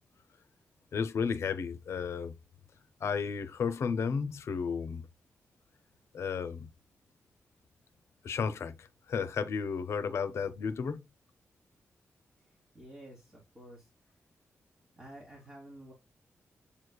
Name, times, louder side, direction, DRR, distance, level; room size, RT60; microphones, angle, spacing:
voice 1, 0.9-2.3 3.0-5.1 6.1-6.7 8.2-11.0, left 6 dB, 70° left, 0.6 m, -33 dB
voice 2, 12.7-13.9 15.0-15.9, right 1 dB, 25° right, 1.5 m, -50 dB
7.2 x 3.1 x 2.2 m
wide cardioid pair, 160°, 5 cm